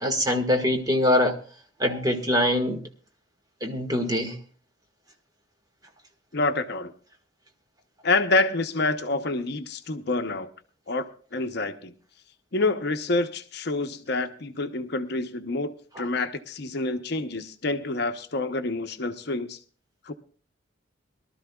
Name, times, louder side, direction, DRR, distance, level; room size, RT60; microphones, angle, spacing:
voice 1, 0.0-1.4 1.8-2.8 3.6-4.4, left 1 dB, 20° right, 1.7 m, -23 dB
voice 2, 6.3-6.9 8.0-10.5 10.9-11.9 12.5-19.6 20.1-20.2, left 3 dB, 55° left, 0.8 m, -27 dB
23.0 x 12.5 x 2.3 m
head